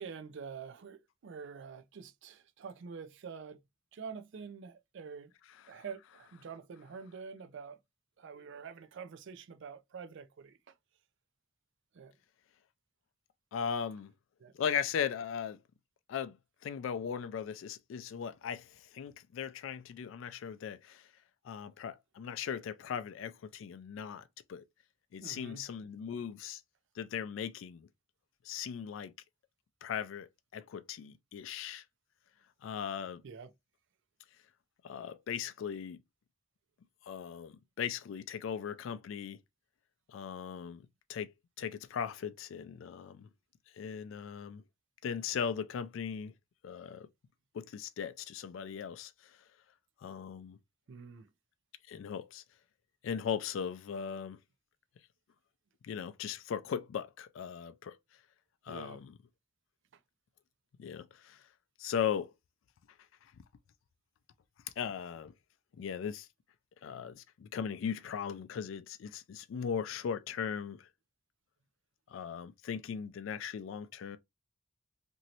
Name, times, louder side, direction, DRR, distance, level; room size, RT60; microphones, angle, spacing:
voice 1, 0.0-3.6 3.9-5.3 5.7-7.8 8.2-10.7 11.9-12.1 14.4-14.5 25.2-25.7 33.2-33.5 50.9-51.3 58.7-59.0, right 6 dB, 60° right, 0.4 m, -46 dB
voice 2, 13.5-14.1 14.6-15.6 16.1-16.4 16.6-21.0 21.4-24.2 24.5-24.6 25.1-26.6 27.0-27.9 28.5-29.1 29.8-30.3 30.5-31.8 32.6-33.2 34.8-36.0 37.1-39.4 40.1-40.8 41.1-41.3 41.6-43.3 43.8-44.6 45.0-46.3 46.6-47.1 47.5-49.1 50.0-50.6 51.9-52.4 53.0-54.4 55.8-58.0 58.7-59.1 60.8-61.4 61.8-62.3 64.8-65.3 65.8-66.3 66.8-70.9 72.1-74.2, left 7 dB, 70° left, 0.3 m, -38 dB
3.0 x 2.6 x 2.7 m
head